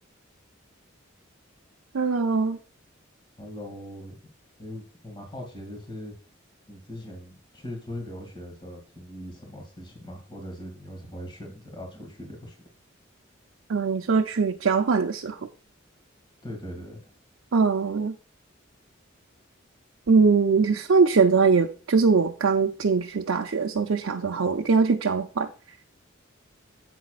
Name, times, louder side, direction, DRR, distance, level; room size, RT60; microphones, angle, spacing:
voice 1, 1.9-2.6 13.7-15.4 17.5-18.1 20.1-25.5, right 4 dB, 80° right, 0.6 m, -22 dB
voice 2, 3.4-4.1 4.6-6.1 6.7-12.6 16.4-17.0, left 1 dB, 25° left, 2.3 m, -40 dB
10.0 x 8.4 x 2.4 m
head